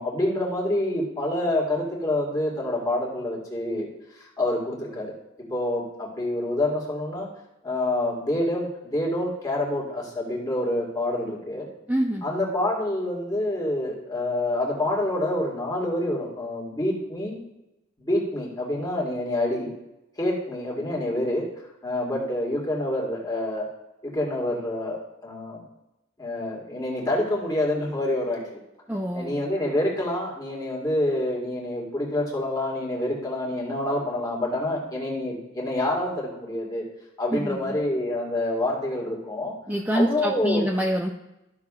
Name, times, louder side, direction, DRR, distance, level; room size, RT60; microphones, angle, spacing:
voice 1, 0.0-3.9 4.2-5.1 5.5-7.3 7.6-11.7 12.2-17.4 18.0-19.7 20.2-21.5 21.8-23.7 24.0-25.6 26.2-28.6 29.1-36.9 37.2-39.5 39.9-40.6, left 1 dB, 20° left, -2 dB, 1.8 m, -27 dB
voice 2, 11.9-12.2 28.9-29.4 37.3-37.8 39.7-41.1, equal, 10° right, -1 dB, 0.5 m, -26 dB
12.5 x 6.1 x 2.4 m, 0.93 s
head